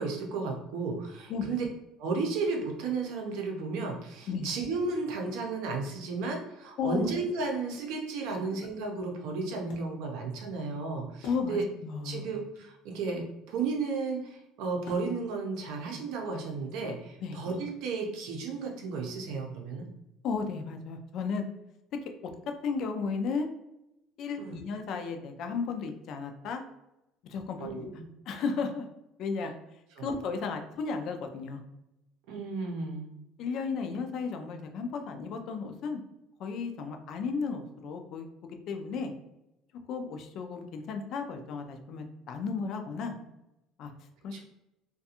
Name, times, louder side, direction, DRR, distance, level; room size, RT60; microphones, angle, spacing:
voice 1, 0.0-1.7 2.0-11.6 12.0-19.9 24.4-24.6 27.6-28.0 30.0-30.1 32.3-33.1 44.3-44.4, right 4 dB, 70° right, 1 dB, 0.6 m, -33 dB
voice 2, 6.8-7.1 11.2-12.3 17.2-17.4 20.2-21.5 22.2-22.3 22.6-23.5 24.2-26.6 27.3-27.9 28.3-28.9 29.2-29.5 30.0-31.6 33.4-36.0 36.4-39.1 39.9-43.1 43.8-43.9 44.2-44.4, left 5 dB, 45° left, 5 dB, 0.4 m, -34 dB
Wood, 7.6-12.0 12.3-12.4 12.6-16.9, left 3 dB, 75° left, 0.7 m, -54 dB
2.4 x 2.2 x 2.8 m, 0.89 s
cardioid pair, 160°, 0 cm